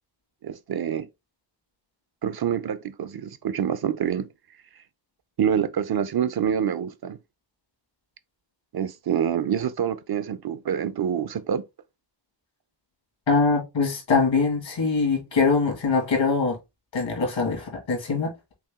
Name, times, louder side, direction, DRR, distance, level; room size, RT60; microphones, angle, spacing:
voice 1, 0.4-1.1 2.2-4.3 5.4-7.2 8.7-11.6, right 8 dB, 55° right, 0.6 m, -26 dB
voice 2, 13.3-16.6 16.9-18.3, left 4 dB, 85° left, 2.0 m, -23 dB
5.8 x 2.1 x 3.6 m
wide cardioid pair, 65°, 45 cm